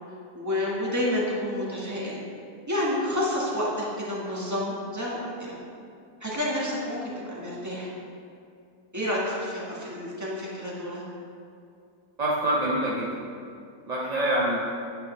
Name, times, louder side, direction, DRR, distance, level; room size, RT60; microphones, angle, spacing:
voice 1, 0.3-2.2 2.7-5.5 6.2-7.9 8.9-11.0, left 1 dB, 10° right, -6 dB, 1.5 m, -29 dB
voice 2, 12.2-13.2 13.9-14.6, right 1 dB, 40° right, -5 dB, 0.5 m, -25 dB
8.5 x 7.6 x 3.3 m, 2.4 s
omnidirectional pair, 1.6 m